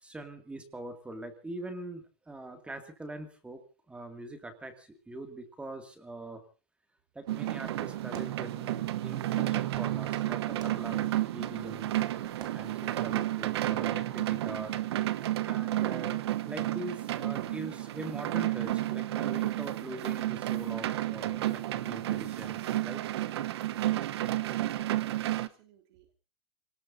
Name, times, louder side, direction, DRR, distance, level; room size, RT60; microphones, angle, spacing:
voice 1, 0.0-6.4 7.1-11.9 12.5-14.8 15.4-23.0, right 2 dB, 10° right, 7 dB, 2.4 m, -43 dB
Fireworks, 7.2-13.2, right 8 dB, 30° right, 2.2 m, -53 dB
sound 1, 7.3-25.5, right 14 dB, 80° right, 1.0 m, -31 dB
voice 2, 24.2-26.1, right 10 dB, 65° right, 3 dB, 3.2 m, -61 dB
27.5 x 19.0 x 2.8 m, 0.35 s
supercardioid pair, 135°, 14 cm